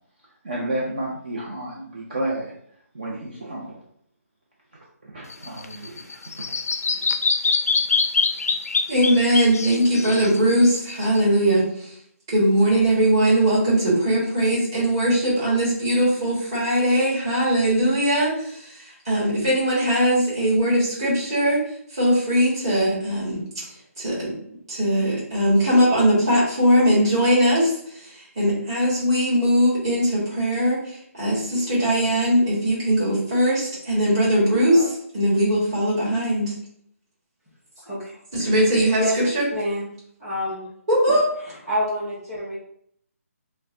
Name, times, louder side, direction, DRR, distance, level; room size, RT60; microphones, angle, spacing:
voice 1, 0.4-2.5 2.9-3.7 5.0-6.6, right 1 dB, 35° right, -5 dB, 0.7 m, -31 dB
Bird vocalization bird call bird song, 5.3-11.2, left 4 dB, 80° left, 0.4 m, -24 dB
voice 2, 8.9-12.0 12.3-23.4 23.7-24.3 24.7-36.5 38.3-39.5 40.9-41.3, equal, 20° right, -8 dB, 1.6 m, -20 dB
voice 3, 37.7-38.2 38.9-39.1 39.5-39.9 40.2-40.7 41.7-42.5, equal, ahead, -11 dB, 1.0 m, -27 dB
6.1 x 2.2 x 2.6 m, 0.67 s
hypercardioid pair, 180°, 8 cm